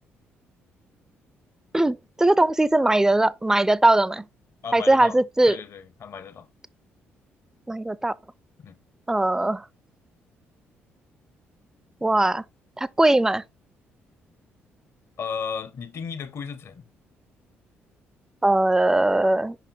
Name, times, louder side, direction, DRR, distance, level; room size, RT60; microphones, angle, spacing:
voice 1, 1.7-4.3 4.7-5.6 7.7-8.1 9.1-9.7 12.0-12.4 12.8-13.4 18.4-19.6, right 2 dB, 10° right, 0.4 m, -20 dB
voice 2, 4.6-5.2 5.5-6.5 8.6-8.8 15.2-16.9, left 6 dB, 45° left, 0.7 m, -34 dB
6.0 x 5.4 x 3.2 m
figure-of-eight pair, 45°, 6 cm